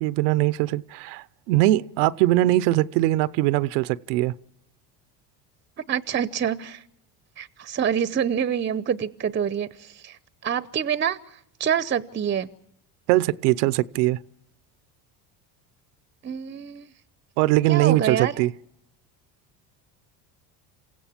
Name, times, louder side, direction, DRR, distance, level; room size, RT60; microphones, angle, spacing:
voice 1, 0.0-4.3 13.1-14.2 17.4-18.5, right 17 dB, 85° right, 0.7 m, -21 dB
voice 2, 5.9-6.8 7.4-12.5 16.2-16.9 17.7-18.3, right 8 dB, 25° right, 0.7 m, -27 dB
28.5 x 16.0 x 7.2 m
supercardioid pair, 90°, 46 cm